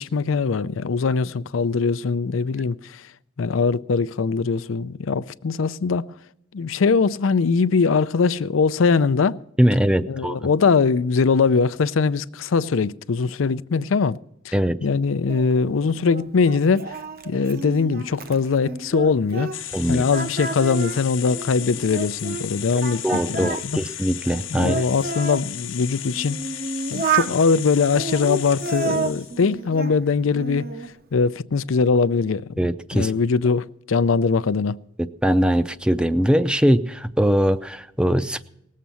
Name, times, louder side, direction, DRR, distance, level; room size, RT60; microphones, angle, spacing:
voice 1, 0.0-3.0 3.4-6.0 6.5-9.4 10.1-14.2 14.4-14.5 14.8-17.0 17.3-19.5 19.9-23.8 24.5-26.4 26.9-30.7 31.1-32.7 32.9-34.8, left 5 dB, 85° left, 0.5 m, -21 dB
voice 2, 9.6-10.4 14.5-14.8 19.7-20.0 23.0-24.8 32.6-33.1 35.0-38.4, equal, 5° right, 0.5 m, -21 dB
Singing, 15.3-19.8 20.1-22.5 22.8-25.4 26.0-27.4 27.9-30.0 30.3-30.9, right 4 dB, 50° right, 0.8 m, -30 dB
sound 1, 19.5-29.5, left 13 dB, 70° left, 0.9 m, -35 dB
19.0 x 7.5 x 7.0 m
head